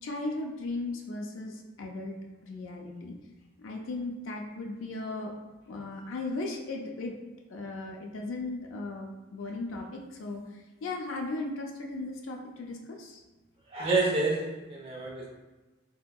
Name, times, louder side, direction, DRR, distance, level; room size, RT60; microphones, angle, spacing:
voice 1, 0.0-2.2 2.4-3.2 3.6-5.3 5.7-7.2 7.5-10.4 10.8-13.2, left 2 dB, 85° left, 1 dB, 0.4 m, -36 dB
voice 2, 13.7-15.3, right 3 dB, 30° right, -4 dB, 0.8 m, -28 dB
3.5 x 2.8 x 2.2 m, 1.1 s
head